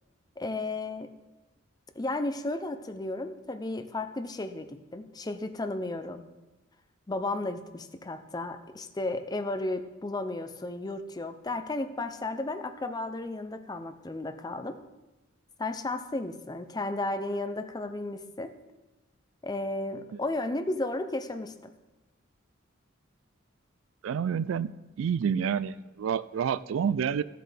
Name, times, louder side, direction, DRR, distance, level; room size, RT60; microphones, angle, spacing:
voice 1, 0.4-1.1 2.0-6.2 7.1-14.8 15.6-18.5 19.4-21.5, left 2 dB, 20° left, 8 dB, 0.5 m, -33 dB
voice 2, 24.0-24.7 25.0-27.2, right 7 dB, 70° right, 17 dB, 0.3 m, -28 dB
15.0 x 7.6 x 3.4 m, 1.1 s
head